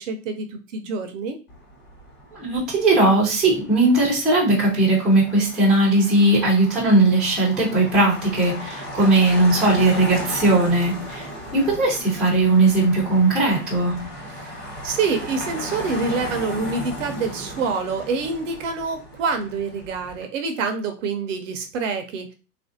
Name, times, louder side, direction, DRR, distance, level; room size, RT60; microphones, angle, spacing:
voice 1, 0.0-1.4 14.4-22.3, right 4 dB, 50° right, 7 dB, 0.6 m, -26 dB
Motor vehicle (road), 1.5-20.2, equal, 20° left, 1.2 m, -36 dB
voice 2, 2.3-13.9, right 2 dB, ahead, -6 dB, 0.5 m, -18 dB
3.4 x 2.5 x 2.5 m, 0.32 s
hypercardioid pair, 140°, 50 cm